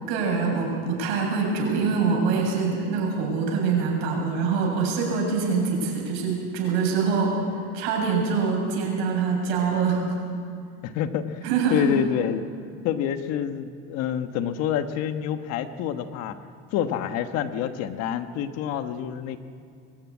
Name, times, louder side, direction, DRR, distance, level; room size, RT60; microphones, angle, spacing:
voice 1, 0.1-7.4 7.7-10.0 11.4-11.9, right 5 dB, 85° right, -1 dB, 7.3 m, -24 dB
voice 2, 10.8-11.4 11.7-12.4 12.8-16.4 16.7-19.4, left 9 dB, 55° left, 9 dB, 1.3 m, -27 dB
23.0 x 13.5 x 9.6 m, 2.3 s
cardioid pair, 145°, 31 cm